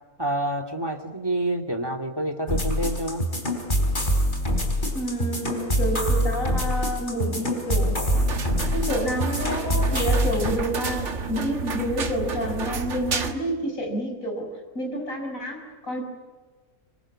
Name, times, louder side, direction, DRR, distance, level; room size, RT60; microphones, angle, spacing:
voice 1, 0.2-3.3, right 1 dB, 15° right, 9 dB, 2.4 m, -28 dB
sound 1, 2.5-10.5, equal, 30° left, 4.2 m, -25 dB
voice 2, 4.9-8.0 8.7-14.5 14.7-16.1, equal, 60° left, 3 dB, 6.6 m, -29 dB
sound 2, 8.1-13.3, right 5 dB, 50° right, 1.9 m, -31 dB
26.5 x 23.5 x 8.7 m, 1.4 s
omnidirectional pair, 1.6 m